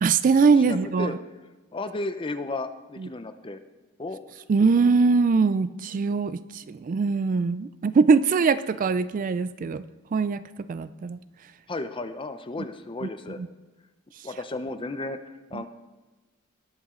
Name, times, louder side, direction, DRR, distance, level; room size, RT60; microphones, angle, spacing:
voice 1, 0.0-1.2 3.0-3.1 4.5-9.8 10.1-10.4 10.7-11.2 13.0-13.1 13.4-13.5 15.5-15.6, right 4 dB, 40° right, 15 dB, 0.3 m, -22 dB
voice 2, 0.6-1.2 1.7-3.6 4.0-4.2 11.7-13.4 14.2-15.7, left 2 dB, 25° left, 10 dB, 0.6 m, -33 dB
19.5 x 7.2 x 3.8 m, 1.2 s
head